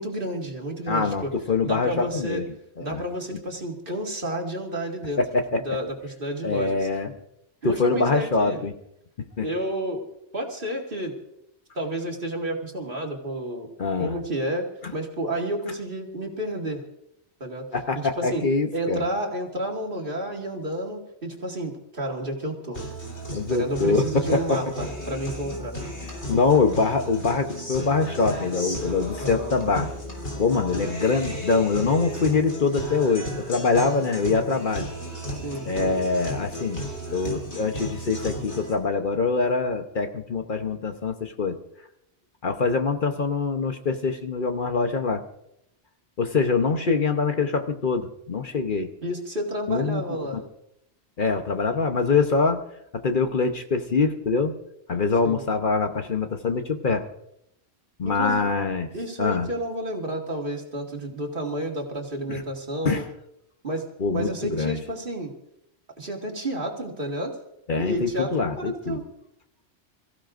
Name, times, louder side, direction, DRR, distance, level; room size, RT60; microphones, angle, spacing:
voice 1, 0.0-1.3 1.6-2.4 2.8-5.2 5.6-6.9 7.6-8.6 9.4-10.0 10.3-11.1 11.8-13.7 14.0-14.7 14.9-16.8 17.4-17.7 17.9-18.4 18.7-22.9 23.3-25.8 29.2-29.5 35.4-35.7 49.0-50.4 55.2-55.4 58.0-58.5 58.9-63.1 63.6-63.9 64.1-65.3 66.0-67.3 67.8-69.0, right 1 dB, 50° right, 1 dB, 2.3 m, -30 dB
voice 2, 0.9-2.4 2.8-3.0 5.2-5.6 6.4-7.1 7.6-8.7 9.4-9.5 13.8-14.1 17.7-19.1 23.3-24.1 24.3-24.6 26.3-29.9 30.4-34.9 35.6-36.8 37.1-41.6 42.4-45.2 46.2-48.9 49.7-50.0 51.2-52.6 52.9-54.5 54.9-57.0 58.0-58.9 59.2-59.5 62.3-62.4 62.8-63.0 64.0-64.8 67.7-69.0, left 4 dB, 50° left, 6 dB, 1.1 m, -24 dB
Guitar, 22.7-38.7, equal, 85° left, 3.8 m, -34 dB
28.0 x 15.5 x 2.6 m, 0.79 s
omnidirectional pair, 1.1 m